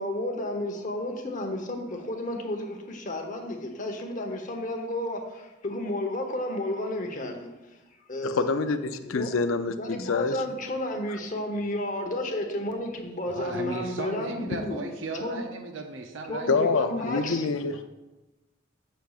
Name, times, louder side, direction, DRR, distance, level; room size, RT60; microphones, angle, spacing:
voice 1, 0.0-7.5 8.1-8.5 9.0-9.3 9.8-14.8 15.1-15.4 16.3-17.4, left 1 dB, 40° left, 3 dB, 1.0 m, -32 dB
voice 2, 8.2-10.4 16.5-17.8, left 4 dB, 85° left, 9 dB, 0.5 m, -26 dB
voice 3, 13.3-17.8, right 3 dB, 70° right, 5 dB, 0.6 m, -37 dB
10.0 x 6.4 x 2.4 m, 1.1 s
head